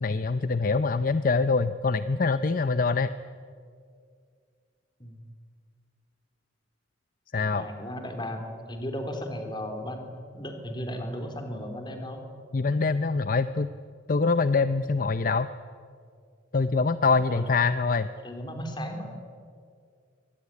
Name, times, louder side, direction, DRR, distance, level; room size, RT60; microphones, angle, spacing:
voice 1, 0.0-3.1 7.3-7.6 12.5-13.7 14.1-15.5 16.5-18.1, left 4 dB, 45° left, 12 dB, 0.6 m, -24 dB
voice 2, 7.3-12.2 17.3-17.4 18.2-19.2, equal, 25° left, 5 dB, 3.1 m, -35 dB
23.5 x 19.0 x 9.7 m, 2.2 s
head